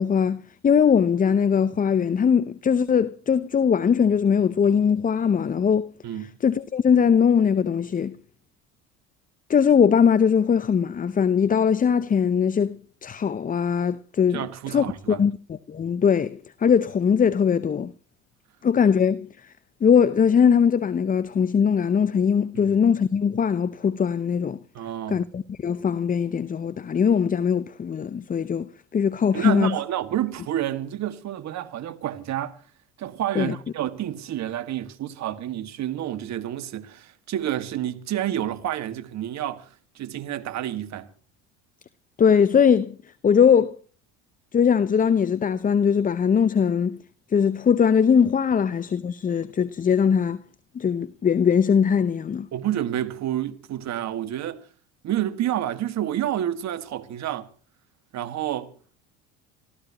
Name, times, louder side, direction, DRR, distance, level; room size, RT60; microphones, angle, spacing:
voice 1, 0.0-5.9 6.4-8.2 9.5-17.9 18.6-19.5 19.8-24.6 25.1-29.8 33.3-33.6 42.2-43.0 43.2-43.8 44.5-47.0 47.3-50.4 50.7-52.5, left 7 dB, 25° left, 0.7 m, -21 dB
voice 2, 14.3-15.2 22.6-22.7 24.7-25.2 29.3-32.6 33.0-39.7 40.0-41.1 52.5-54.6 55.0-57.5 58.1-58.7, right 11 dB, 50° right, 1.9 m, -29 dB
27.0 x 14.5 x 3.0 m
supercardioid pair, 85°, 35 cm